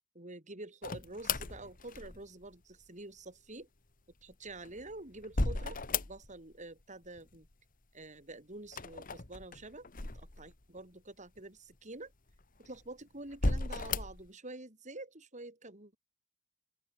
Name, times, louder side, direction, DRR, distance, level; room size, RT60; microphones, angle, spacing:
voice 1, 0.1-3.7 4.2-5.8 6.1-7.5 7.9-12.1 12.6-16.0, right 2 dB, 40° right, 5.6 m, -47 dB
sound 1, 0.8-2.5 4.3-6.5 6.8-7.5 8.6-10.8 11.4-11.5 12.3-12.8 13.3-14.3, left 3 dB, 45° left, 1.6 m, -36 dB
open air
head